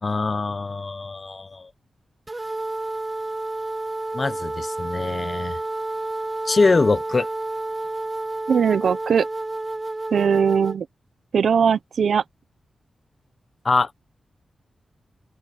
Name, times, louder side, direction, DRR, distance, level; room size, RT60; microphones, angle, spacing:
voice 1, 0.0-1.7 4.1-5.6 6.5-7.3 13.6-13.9, left 3 dB, 30° left, 1.0 m, -23 dB
sound 1, 2.3-10.8, right 2 dB, 20° right, 3.1 m, -30 dB
voice 2, 8.5-9.3 10.1-10.9 11.3-12.2, right 6 dB, 65° right, 0.8 m, -19 dB
open air
wide cardioid pair, 165°, 0 cm